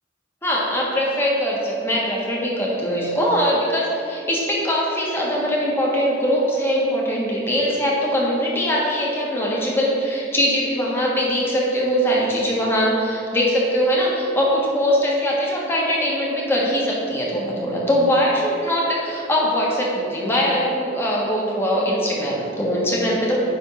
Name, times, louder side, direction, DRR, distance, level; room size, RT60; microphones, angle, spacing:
voice 1, 0.4-23.4, equal, 15° left, -4 dB, 1.3 m, -21 dB
8.9 x 3.5 x 5.4 m, 2.7 s
head